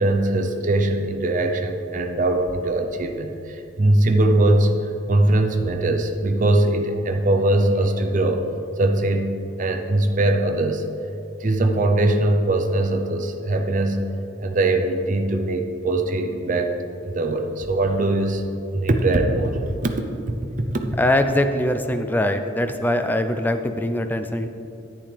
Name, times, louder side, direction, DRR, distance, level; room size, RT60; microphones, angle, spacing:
voice 1, 0.0-4.7 5.1-8.4 8.8-9.3 9.6-10.8 11.4-14.0 14.4-16.7 17.0-18.4 18.7-19.9 20.6-20.9, right 2 dB, 40° right, 4 dB, 0.6 m, -21 dB
voice 2, 21.0-24.5, left 1 dB, 10° left, 7 dB, 0.4 m, -22 dB
10.5 x 9.1 x 3.3 m, 2.7 s
head